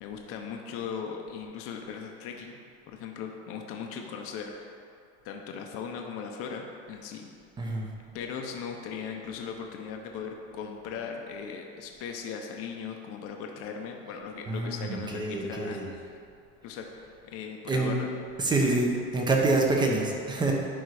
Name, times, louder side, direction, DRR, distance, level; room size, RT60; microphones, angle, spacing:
voice 1, 0.0-2.6 2.9-4.8 5.2-7.3 8.1-16.2 16.6-16.9 17.2-18.1, left 6 dB, 50° left, 2 dB, 0.9 m, -38 dB
voice 2, 7.6-7.9 14.5-15.9 17.7-18.0 18.4-20.5, right 2 dB, 15° right, 0 dB, 0.9 m, -26 dB
11.0 x 4.0 x 4.9 m, 2.3 s
cardioid pair, 150°, 30 cm